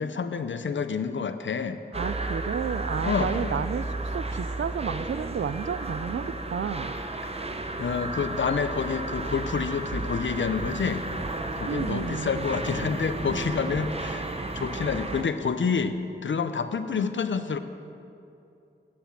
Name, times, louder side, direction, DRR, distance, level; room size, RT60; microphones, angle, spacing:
voice 1, 0.0-1.8 3.0-3.7 7.2-7.5 7.8-11.1 11.5-14.3 14.5-17.6, left 5 dB, 75° left, 10 dB, 0.6 m, -28 dB
sound 1, 1.9-15.2, right 2 dB, 30° right, 0.7 m, -33 dB
voice 2, 1.9-6.9 11.7-12.5 16.9-17.1, right 7 dB, 75° right, 14 dB, 0.4 m, -32 dB
9.5 x 7.1 x 7.3 m, 2.7 s
wide cardioid pair, 85°, 20 cm